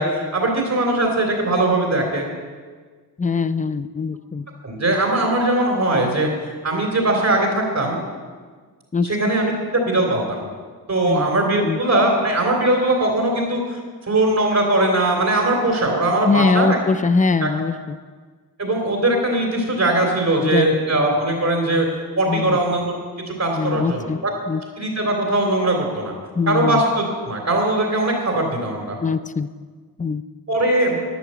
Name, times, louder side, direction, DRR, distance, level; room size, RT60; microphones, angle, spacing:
voice 1, 0.0-2.3 4.6-6.3 6.6-8.0 9.0-10.4 10.9-13.8 14.1-16.8 17.4-17.5 18.6-21.9 22.2-22.9 23.3-24.3 24.8-26.1 26.5-29.0 30.5-31.0, right 2 dB, 45° right, 0 dB, 3.1 m, -20 dB
voice 2, 3.2-4.5 8.9-9.1 11.1-11.3 11.6-11.8 16.3-18.0 20.4-20.8 22.3-22.6 23.6-24.2 24.5-24.6 26.4-26.8 29.0-29.5 30.0-30.2, left 4 dB, 20° left, 13 dB, 0.5 m, -22 dB
12.0 x 11.0 x 7.5 m, 1.5 s
wide cardioid pair, 130°, 38 cm